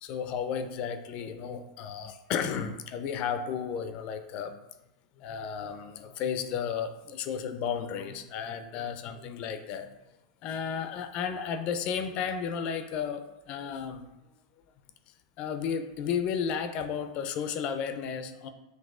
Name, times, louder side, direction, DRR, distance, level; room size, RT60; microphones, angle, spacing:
voice 1, 0.0-4.5 5.2-9.9 10.4-14.0 15.4-18.5, left 7 dB, 45° left, 9 dB, 0.3 m, -33 dB
5.3 x 3.0 x 2.4 m, 0.97 s
supercardioid pair, 130°, 3 cm